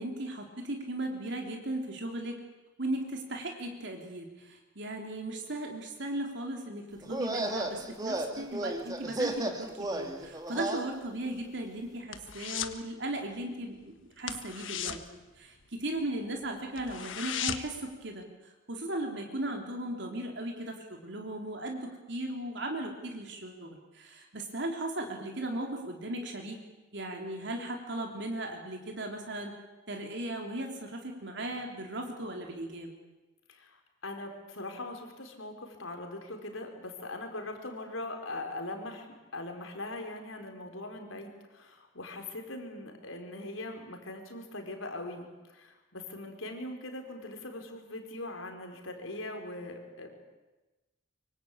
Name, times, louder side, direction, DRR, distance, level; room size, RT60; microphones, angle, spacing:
voice 1, 0.0-2.4 2.8-26.6 26.9-29.5 29.9-32.9, right 1 dB, 60° right, 2 dB, 3.4 m, -37 dB
sound 1, 7.0-10.9, right 1 dB, 20° right, 2.4 m, -34 dB
sound 2, 11.2-12.8 13.1-13.4 13.7-13.8 14.2-16.1 16.4-16.5 16.8-17.9 18.2-18.3, left 9 dB, 75° left, 1.5 m, -37 dB
voice 2, 33.5-39.1 39.3-50.1, left 2 dB, 90° left, 4 dB, 4.8 m, -41 dB
24.5 x 24.5 x 8.7 m, 1.1 s
head